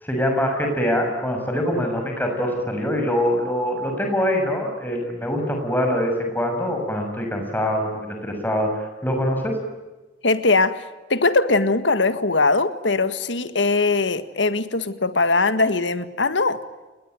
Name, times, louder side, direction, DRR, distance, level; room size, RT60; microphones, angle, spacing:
voice 1, 0.0-8.7 9.0-9.5, equal, 10° left, 2 dB, 6.6 m, -24 dB
voice 2, 10.2-16.6, left 3 dB, 80° left, 11 dB, 1.8 m, -21 dB
29.5 x 21.0 x 9.2 m, 1.2 s
head